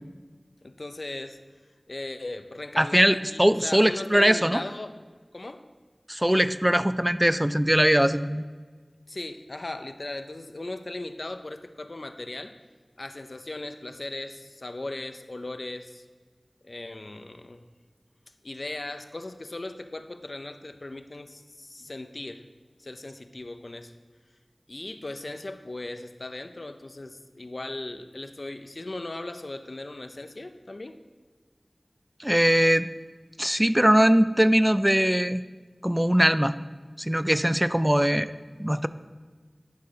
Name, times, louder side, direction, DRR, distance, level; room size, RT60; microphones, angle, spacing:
voice 1, 0.6-1.4 1.9-5.0 5.3-5.6 9.1-12.5 13.0-16.1 16.6-17.6 18.4-22.5 22.8-23.9 24.7-31.0, left 2 dB, 65° left, 8 dB, 0.4 m, -38 dB
voice 2, 2.8-4.6 6.1-8.4 32.2-32.9 33.4-35.4 35.8-36.6 37.0-38.3 38.6-38.9, equal, 15° right, 14 dB, 0.3 m, -21 dB
9.5 x 3.8 x 6.7 m, 1.4 s
wide cardioid pair, 50°, 0 cm